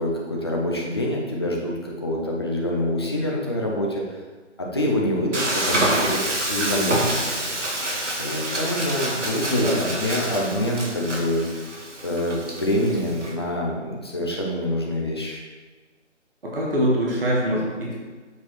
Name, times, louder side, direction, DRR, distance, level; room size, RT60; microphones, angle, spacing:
voice 1, 0.0-4.0 4.6-6.2 6.5-7.8 8.2-11.6 12.0-15.4, left 1 dB, 20° left, -2 dB, 0.8 m, -26 dB
Frying (food), 5.3-13.3, right 1 dB, 75° right, 1.8 m, -27 dB
voice 2, 16.4-18.0, equal, 50° right, -4 dB, 1.7 m, -23 dB
7.5 x 4.7 x 4.5 m, 1.4 s
figure-of-eight pair, 155°, 36 cm